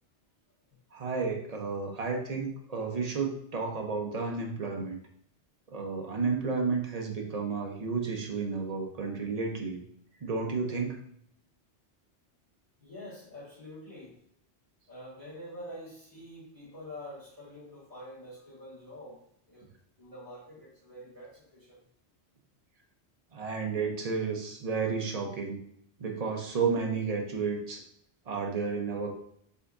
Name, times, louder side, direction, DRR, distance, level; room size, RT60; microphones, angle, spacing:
voice 1, 0.9-5.0 5.7-9.8 10.2-11.0 23.3-25.6 26.0-27.8 28.3-29.1, right 4 dB, 40° right, 1 dB, 0.7 m, -32 dB
voice 2, 12.8-14.2 14.9-19.2 19.5-21.8, left 1 dB, 30° left, -10 dB, 2.0 m, -46 dB
5.2 x 3.4 x 2.5 m, 0.69 s
omnidirectional pair, 1.2 m